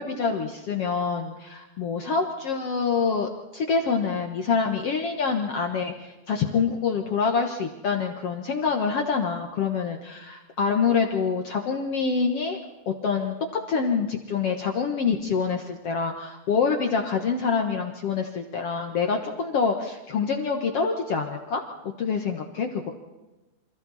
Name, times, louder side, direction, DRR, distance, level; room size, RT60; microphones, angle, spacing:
voice 1, 0.0-12.6 12.8-13.3 13.7-21.6 22.0-22.9, left 5 dB, 75° left, 3 dB, 1.3 m, -26 dB
28.0 x 26.5 x 4.2 m, 1.1 s
omnidirectional pair, 4.9 m